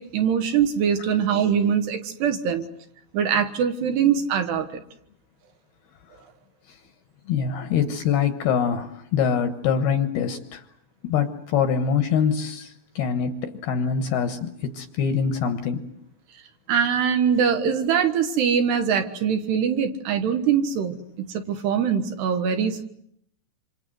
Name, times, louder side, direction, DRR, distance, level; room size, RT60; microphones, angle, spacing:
voice 1, 0.0-2.6 3.1-4.8 16.7-22.8, right 7 dB, 65° right, 7 dB, 3.2 m, -23 dB
voice 2, 7.3-10.6 11.0-15.8, left 7 dB, 65° left, 8 dB, 2.7 m, -24 dB
27.0 x 26.5 x 7.9 m, 0.72 s
omnidirectional pair, 5.6 m